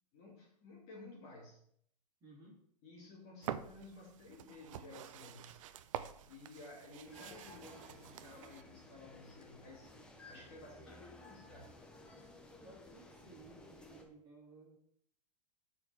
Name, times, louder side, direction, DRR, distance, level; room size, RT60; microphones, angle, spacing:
voice 1, 0.1-1.6 2.8-5.6 6.2-11.8, left 2 dB, 30° left, -3 dB, 2.4 m, -54 dB
voice 2, 2.2-2.6 12.6-14.8, right 3 dB, 20° right, -4 dB, 3.0 m, -58 dB
sound 1, 3.4-8.6, right 10 dB, 55° right, 0.6 m, -47 dB
sound 2, 7.0-14.0, left 2 dB, 5° left, 0.8 m, -56 dB
13.0 x 4.8 x 4.4 m, 0.68 s
supercardioid pair, 165°, 20 cm